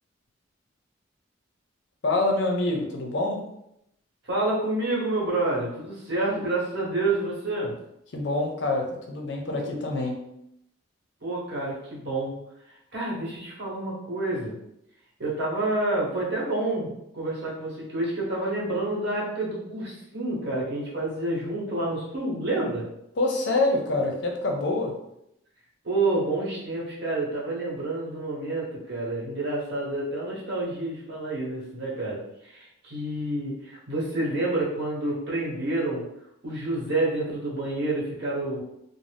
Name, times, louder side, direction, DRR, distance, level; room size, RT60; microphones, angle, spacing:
voice 1, 2.0-3.4 8.1-10.2 23.2-25.0, left 2 dB, 60° left, 1 dB, 0.5 m, -26 dB
voice 2, 4.2-7.7 11.2-12.4 12.9-14.6 15.2-22.9 25.8-36.1 36.4-38.6, right 2 dB, 55° right, -6 dB, 1.1 m, -28 dB
2.6 x 2.0 x 3.3 m, 0.79 s
head